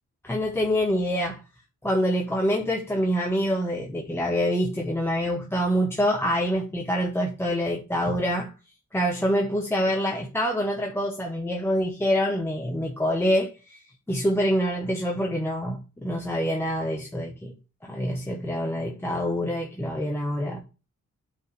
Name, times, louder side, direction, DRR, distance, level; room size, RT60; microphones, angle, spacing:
voice 1, 0.2-1.4 1.8-8.5 8.9-17.5 17.8-20.6, equal, 10° left, 1.1 m, -26 dB
8.8 x 4.8 x 3.3 m
wide cardioid pair, 155°, 30 cm